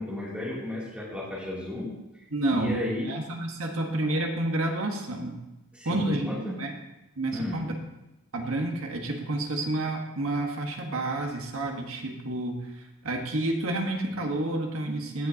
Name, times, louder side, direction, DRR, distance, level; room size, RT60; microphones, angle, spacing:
voice 1, 0.0-1.9 2.5-3.1 5.7-6.5 7.3-7.6, left 1 dB, 5° right, -7 dB, 2.9 m, -33 dB
voice 2, 2.3-5.4 5.8-6.3 6.6-6.7 7.2-7.7 8.3-12.6 13.0-15.3, right 2 dB, 65° right, 2 dB, 1.4 m, -29 dB
16.0 x 6.6 x 2.9 m, 0.97 s
head